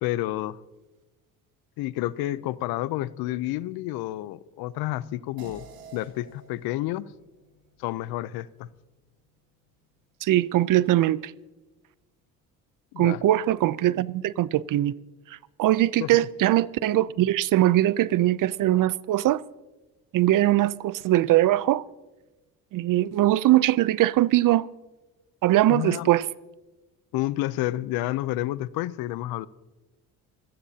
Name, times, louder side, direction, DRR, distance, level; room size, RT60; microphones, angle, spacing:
voice 1, 0.0-0.6 1.8-5.7 5.9-7.1 7.8-8.7 12.9-13.2 16.0-16.1 25.7-26.1 27.1-29.5, left 15 dB, 80° left, 0.7 m, -30 dB
sound 1, 5.4-10.1, right 4 dB, 80° right, 4.6 m, -51 dB
voice 2, 10.2-11.3 13.0-14.9 15.6-19.4 20.1-21.8 22.7-24.7 25.4-26.2, right 14 dB, 60° right, 0.6 m, -21 dB
28.0 x 17.0 x 2.8 m
supercardioid pair, 80°, 37 cm